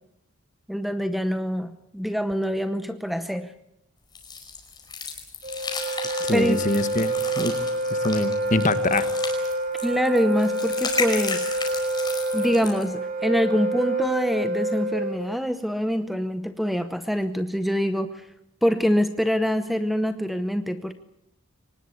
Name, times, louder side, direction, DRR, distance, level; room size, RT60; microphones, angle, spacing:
voice 1, 0.7-3.5 6.3-6.7 9.8-11.5 12.3-18.3 18.6-20.9, equal, ahead, 10 dB, 0.8 m, -25 dB
sound 1, 4.2-12.9, left 4 dB, 20° left, 5.0 m, -34 dB
Wind instrument woodwind instrument, 5.4-15.3, right 1 dB, 40° right, 3.0 m, -27 dB
voice 2, 6.2-7.6 7.9-9.1, left 2 dB, 35° left, 12 dB, 1.5 m, -25 dB
24.5 x 19.5 x 8.4 m, 0.80 s
head